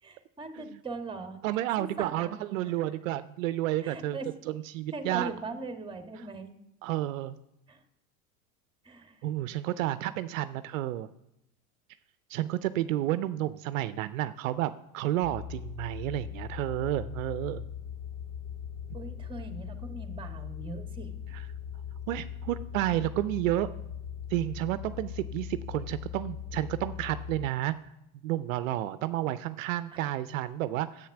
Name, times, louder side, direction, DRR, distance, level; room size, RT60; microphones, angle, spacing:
voice 1, 0.0-1.4 1.8-2.9 3.8-4.3 4.9-6.5 7.7-7.8 8.8-9.2 18.9-21.1 30.0-30.1, right 3 dB, 10° right, 6 dB, 1.5 m, -40 dB
voice 2, 1.4-4.2 4.5-5.3 6.8-7.3 9.2-11.1 12.3-17.6 21.3-21.4 22.1-23.7 24.3-27.7 28.2-31.1, right 14 dB, 65° right, 14 dB, 0.6 m, -31 dB
sound 1, 15.2-27.5, left 8 dB, 60° left, 1.6 m, -40 dB
10.0 x 8.2 x 5.9 m, 0.83 s
hypercardioid pair, 90°, 43 cm